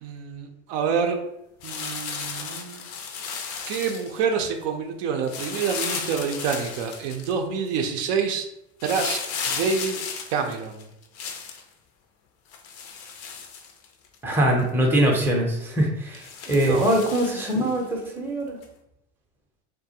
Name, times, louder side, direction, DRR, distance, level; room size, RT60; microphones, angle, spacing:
voice 1, 0.0-1.2 1.6-2.8 3.7-8.5 8.8-9.2 9.5-10.0 10.3-10.8 16.6-16.9, right 6 dB, 60° right, 4 dB, 0.5 m, -27 dB
sound 1, 1.6-4.2 5.3-7.3 8.8-11.6 12.5-14.2 14.6-14.7 15.1-15.2 16.1-17.8 18.6-18.7, left 6 dB, 45° left, 0.5 m, -34 dB
voice 2, 14.2-18.6, right 1 dB, 5° right, -1 dB, 0.6 m, -22 dB
2.3 x 2.1 x 2.7 m, 0.84 s
hypercardioid pair, 90°, 35 cm